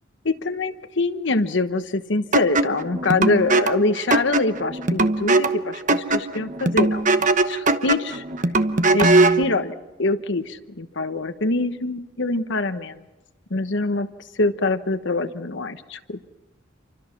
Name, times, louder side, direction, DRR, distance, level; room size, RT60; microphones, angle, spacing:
voice 1, 0.2-8.2 8.9-13.0 13.5-14.1 14.4-16.2, left 3 dB, 65° left, 10 dB, 1.2 m, -24 dB
sound 1, 2.3-9.5, right 2 dB, 40° right, 1.1 m, -20 dB
29.0 x 24.5 x 6.0 m, 1.1 s
head